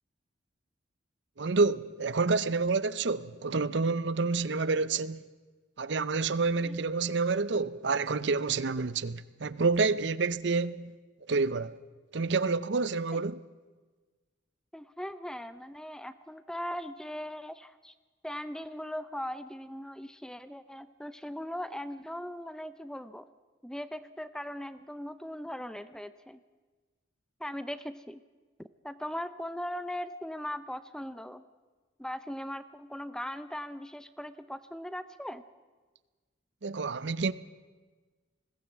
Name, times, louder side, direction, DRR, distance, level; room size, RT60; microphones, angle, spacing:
voice 1, 1.4-5.2 5.8-10.9 11.3-11.8 12.1-13.4 36.6-37.3, right 4 dB, 65° right, 0.6 m, -28 dB
voice 2, 14.7-17.9 18.2-23.3 23.6-26.4 27.4-28.2 28.6-31.4 32.0-35.4, equal, 5° left, 0.5 m, -39 dB
21.0 x 16.0 x 8.2 m
head